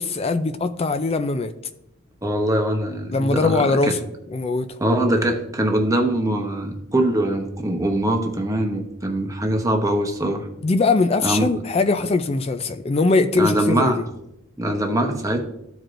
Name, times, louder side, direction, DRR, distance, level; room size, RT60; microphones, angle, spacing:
voice 1, 0.0-1.5 3.1-4.0 4.3-4.8 10.6-14.0, left 3 dB, 30° left, 0.4 m, -21 dB
voice 2, 2.2-3.9 4.8-10.5 11.2-11.5 13.4-14.0 14.6-15.4, right 1 dB, 15° right, 0.8 m, -22 dB
14.0 x 4.7 x 2.5 m
head